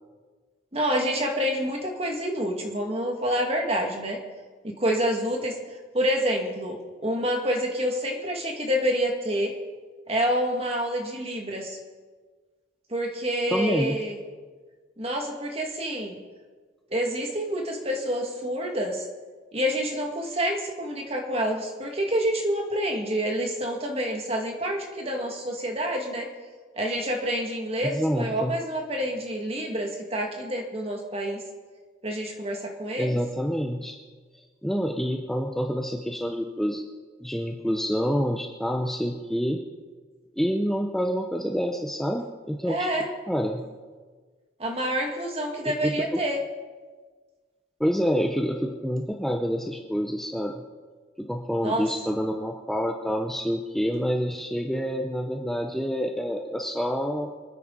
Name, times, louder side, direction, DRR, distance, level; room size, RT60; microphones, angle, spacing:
voice 1, 0.7-4.2 4.6-9.5 10.1-11.8 12.9-14.2 15.0-16.2 16.9-19.1 19.5-26.3 26.8-31.4 32.0-33.2 42.6-43.1 44.6-46.4 51.6-52.2, equal, 30° right, 1 dB, 2.2 m, -28 dB
voice 2, 13.5-14.0 27.8-28.6 33.0-34.0 34.6-36.8 37.2-39.6 40.4-42.9 43.3-43.7 45.6-46.2 47.8-50.6 51.2-57.3, equal, ahead, 2 dB, 0.7 m, -27 dB
26.5 x 9.9 x 4.1 m, 1.4 s
head